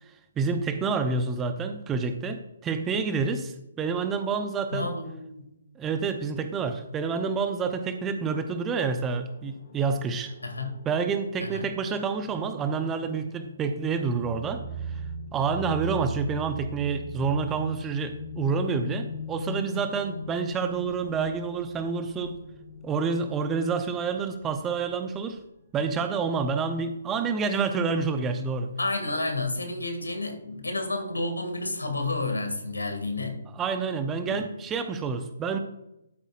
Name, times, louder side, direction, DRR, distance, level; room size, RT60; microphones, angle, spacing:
voice 1, 0.4-4.9 5.8-10.3 10.9-15.0 15.3-22.4 22.8-25.4 25.7-28.7 33.5-35.6, right 5 dB, 15° right, 8 dB, 0.7 m, -28 dB
voice 2, 4.7-5.5 10.4-10.7 11.4-11.6 28.8-33.4 34.2-34.4, left 2 dB, 80° left, 5 dB, 2.3 m, -30 dB
sound 1, 8.2-25.4, equal, 45° left, 3.3 m, -41 dB
12.5 x 9.0 x 2.5 m, 0.85 s
figure-of-eight pair, 135°, 0 cm